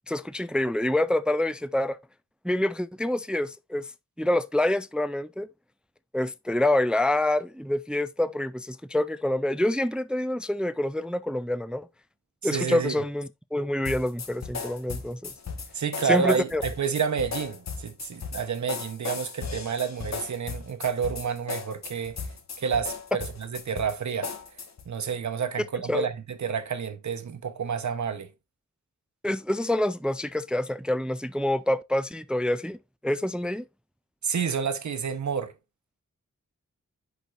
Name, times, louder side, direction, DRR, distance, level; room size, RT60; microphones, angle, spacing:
voice 1, 0.1-2.0 2.4-3.8 4.2-5.5 6.1-11.9 12.4-15.3 16.1-16.6 25.9-26.1 29.2-33.6, left 1 dB, 5° right, 0.3 m, -27 dB
voice 2, 12.4-12.9 15.7-22.1 22.6-24.3 24.8-28.3 34.2-35.5, right 6 dB, 75° right, 1.0 m, -29 dB
sound 1, 13.8-24.9, left 5 dB, 65° left, 1.3 m, -37 dB
8.2 x 6.0 x 2.5 m
wide cardioid pair, 115°, 29 cm